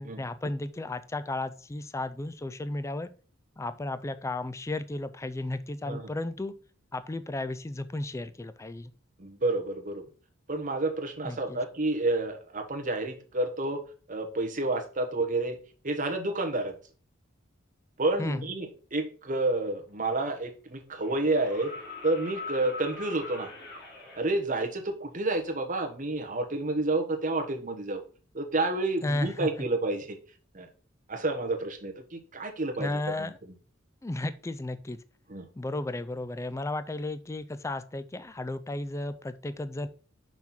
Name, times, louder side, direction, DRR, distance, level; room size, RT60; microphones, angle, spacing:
voice 1, 0.0-3.1 3.6-6.5 6.9-8.9 11.2-11.6 18.2-18.5 29.0-29.5 32.8-33.3 34.0-35.0 35.6-39.9, left 2 dB, 15° left, 13 dB, 0.3 m, -34 dB
voice 2, 9.2-10.0 10.5-13.8 14.1-15.6 15.8-16.7 18.0-21.7 22.0-23.5 24.1-28.0 28.3-30.2 30.5-30.7 31.1-33.3 35.3-35.5, right 2 dB, 40° right, 4 dB, 1.3 m, -30 dB
sound 1, 19.9-20.0 21.0-24.2 26.0-26.1, left 3 dB, 55° left, 2.2 m, -42 dB
5.9 x 4.4 x 5.8 m, 0.39 s
head